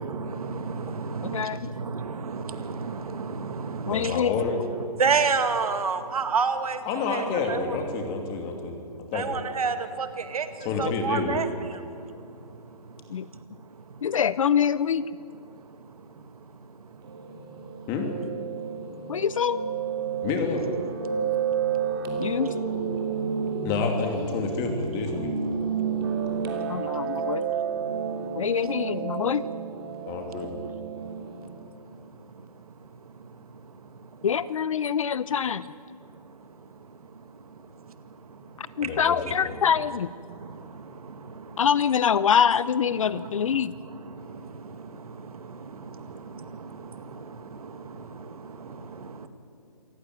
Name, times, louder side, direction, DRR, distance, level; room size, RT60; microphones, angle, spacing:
voice 1, 0.0-4.4 5.0-7.8 9.1-14.1 15.4-17.9 18.6-19.2 20.0-20.3 21.1-22.4 22.9-23.7 25.2-25.3 25.6-27.0 27.8-28.5 29.9-30.4 31.0-34.3 36.0-38.9 40.3-41.7 43.0-49.3, right 5 dB, 65° right, 9 dB, 2.0 m, -34 dB
voice 2, 1.2-1.6 3.9-4.3 10.7-11.0 13.1-13.3 14.0-15.0 19.1-19.6 22.2-22.5 26.7-27.4 28.4-29.4 34.2-35.7 38.6-40.1 41.6-43.7, left 8 dB, 55° left, 17 dB, 0.7 m, -25 dB
voice 3, 3.9-4.6 6.8-9.3 10.6-11.4 17.9-18.1 20.2-20.7 23.6-25.3 30.1-30.5 38.8-39.2 39.4-39.6, left 4 dB, 20° left, 4 dB, 2.8 m, -29 dB
Piano, 17.0-31.5, right 6 dB, 35° right, 3.0 m, -31 dB
26.5 x 15.0 x 9.4 m, 2.5 s
hypercardioid pair, 155°, 20 cm